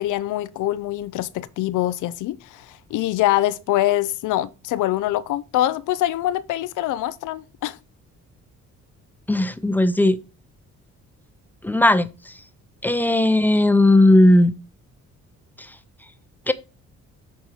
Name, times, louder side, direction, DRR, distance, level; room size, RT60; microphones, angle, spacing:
voice 1, 0.0-7.8, left 14 dB, 80° left, 0.6 m, -24 dB
voice 2, 9.3-10.2 11.6-12.3 12.8-14.5 15.6-15.7 16.5-16.6, left 1 dB, 5° left, 0.7 m, -17 dB
8.3 x 4.3 x 4.9 m
cardioid pair, 90°, 30 cm